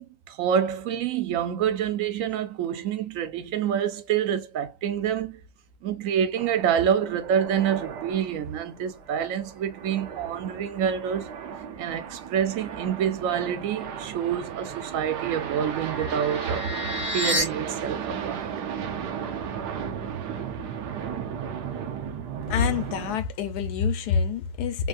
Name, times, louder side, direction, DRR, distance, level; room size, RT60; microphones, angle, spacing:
voice 1, 0.0-5.4 5.8-11.3 11.8-16.7 17.1-18.5, right 8 dB, 65° right, 0.8 m, -27 dB
sound 1, 6.4-23.2, right 7 dB, 85° right, 1.3 m, -35 dB
sound 2, 15.2-17.4, left 1 dB, 35° left, 0.4 m, -31 dB
voice 2, 22.5-24.9, left 6 dB, 75° left, 1.2 m, -26 dB
3.4 x 2.3 x 2.5 m
omnidirectional pair, 1.7 m